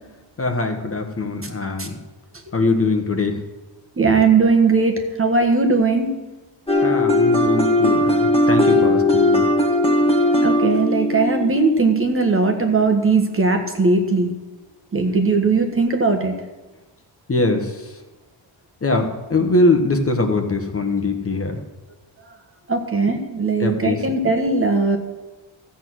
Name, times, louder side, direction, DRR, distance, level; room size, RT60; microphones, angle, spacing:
voice 1, 0.4-2.0 2.5-3.4 6.8-9.5 10.0-10.1 17.3-17.9 18.8-21.5 23.6-24.0, left 2 dB, 30° left, 5 dB, 1.3 m, -22 dB
voice 2, 4.0-6.1 10.4-14.3 14.9-16.3 22.7-25.0, right 4 dB, 30° right, 5 dB, 1.3 m, -18 dB
sound 1, 6.7-12.5, left 1 dB, 10° left, 1.5 m, -18 dB
14.5 x 8.2 x 6.3 m, 1.1 s
wide cardioid pair, 145°, 46 cm